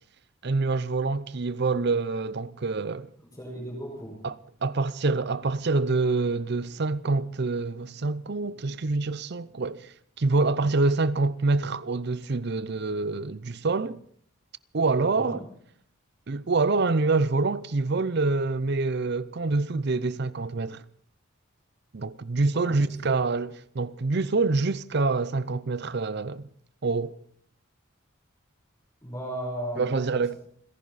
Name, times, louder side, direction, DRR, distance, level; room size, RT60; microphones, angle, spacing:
voice 1, 0.4-3.1 4.2-14.0 14.7-15.4 16.3-20.8 21.9-26.5 26.8-27.2 29.8-30.3, right 3 dB, 55° right, 0.6 m, -26 dB
voice 2, 3.3-4.2 15.0-15.4 22.6-23.2 29.0-30.0, equal, 20° left, 5.6 m, -36 dB
29.0 x 11.0 x 4.1 m
head